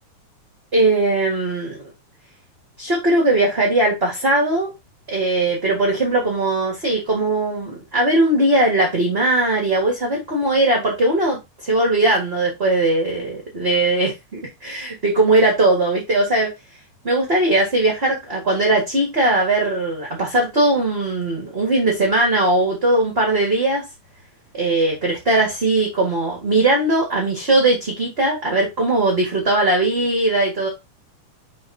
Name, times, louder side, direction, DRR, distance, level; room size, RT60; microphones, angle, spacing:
voice 1, 0.7-1.8 2.8-4.7 5.1-16.5 17.0-23.8 24.5-30.7, right 2 dB, 25° right, 1.6 m, -19 dB
5.6 x 4.5 x 4.3 m
omnidirectional pair, 3.6 m